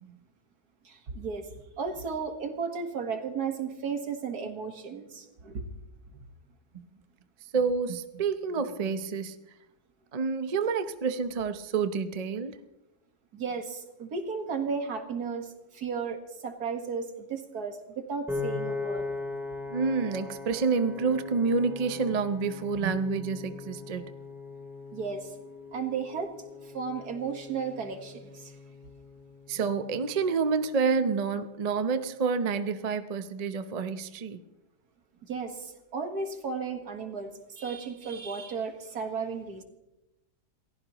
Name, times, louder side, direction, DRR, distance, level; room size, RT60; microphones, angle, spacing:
voice 1, 0.8-1.5 1.8-5.7 6.1-6.2 13.3-19.1 24.9-25.3 25.7-26.3 26.6-28.5 35.3-39.6, right 5 dB, 70° right, 5 dB, 2.1 m, -34 dB
voice 2, 7.5-9.4 10.1-12.6 19.7-24.1 29.5-34.4, right 5 dB, 40° right, 10 dB, 0.6 m, -28 dB
Piano, 18.3-30.5, left 3 dB, ahead, 2.4 m, -40 dB
28.0 x 15.5 x 3.0 m, 0.97 s
omnidirectional pair, 1.7 m